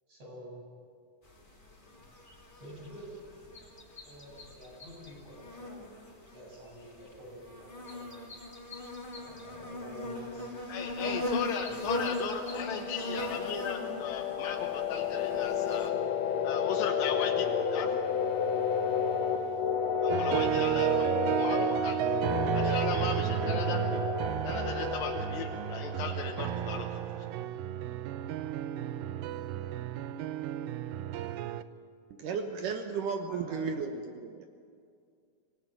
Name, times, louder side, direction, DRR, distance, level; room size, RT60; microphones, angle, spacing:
voice 1, 0.1-0.6 2.6-3.2 4.0-5.8 6.1-8.2 9.2-10.5 10.8-11.2 11.7-11.9 13.1-13.6 33.3-33.8, equal, 45° right, -2 dB, 8.8 m, -48 dB
sound 1, 1.3-15.9, left 1 dB, 15° left, 2.8 m, -39 dB
voice 2, 10.7-15.9 16.4-18.0 20.0-22.1 22.5-23.8 24.4-27.1, left 7 dB, 85° left, 2 dB, 2.9 m, -37 dB
sound 2, 12.3-26.9, left 6 dB, 60° left, 2.0 m, -32 dB
sound 3, 20.1-31.6, right 12 dB, 85° right, 2.5 m, -32 dB
voice 3, 32.2-34.5, right 5 dB, 70° right, 5 dB, 2.7 m, -34 dB
25.5 x 18.5 x 9.2 m, 2.2 s
omnidirectional pair, 4.0 m